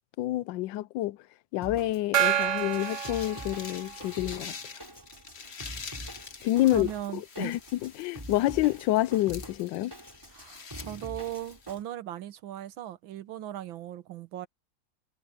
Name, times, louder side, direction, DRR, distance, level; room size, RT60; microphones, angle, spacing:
voice 1, 0.2-1.2 1.5-4.8 6.4-9.9, left 16 dB, 75° left, 1.2 m, -28 dB
Drum kit, 1.6-11.8, right 1 dB, 10° right, 4.6 m, -45 dB
Gong, 2.1-4.2, right 11 dB, 65° right, 1.5 m, -28 dB
sound 1, 2.3-11.8, left 5 dB, 35° left, 1.4 m, -46 dB
voice 2, 6.7-7.5 10.3-14.5, right 12 dB, 85° right, 1.7 m, -38 dB
omnidirectional pair, 2.1 m